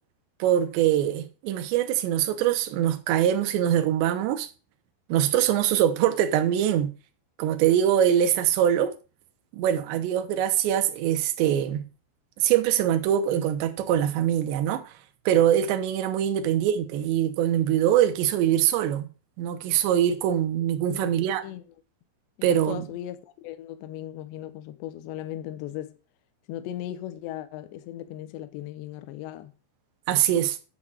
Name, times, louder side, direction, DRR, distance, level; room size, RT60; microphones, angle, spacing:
voice 1, 0.4-4.5 5.1-6.9 7.4-8.9 9.5-11.9 12.4-14.8 15.3-19.1 19.4-21.4 22.4-22.8 30.1-30.6, right 10 dB, 75° right, 2.8 m, -23 dB
voice 2, 20.9-21.6 22.4-26.0 26.5-29.5, left 12 dB, 75° left, 2.8 m, -37 dB
9.9 x 6.2 x 6.1 m
omnidirectional pair, 5.9 m